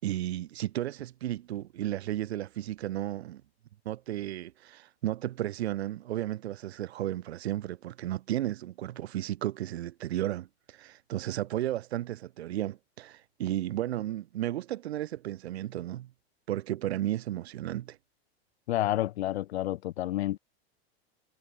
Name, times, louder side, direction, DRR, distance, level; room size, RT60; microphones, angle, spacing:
voice 1, 0.0-3.4 3.9-16.1 16.5-18.0, right 13 dB, 80° right, 5.8 m, -33 dB
voice 2, 18.7-20.4, left 14 dB, 80° left, 1.6 m, -29 dB
supercardioid pair, 140°, 32 cm